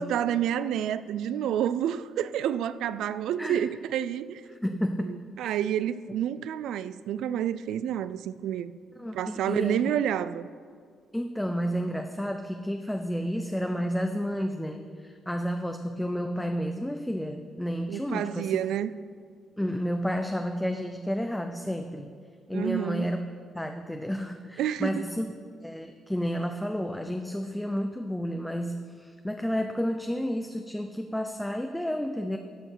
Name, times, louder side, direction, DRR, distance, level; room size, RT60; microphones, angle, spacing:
voice 1, 0.0-4.5 5.0-8.7 9.1-10.5 17.9-18.9 22.5-23.1 24.6-25.0, right 10 dB, 80° right, 0.3 m, -29 dB
voice 2, 4.5-5.5 9.0-9.8 11.1-18.6 19.6-22.1 22.5-23.3 23.5-25.3 25.6-32.4, equal, 5° left, 0.5 m, -31 dB
13.0 x 4.7 x 6.1 m
cardioid pair, 90°, 0 cm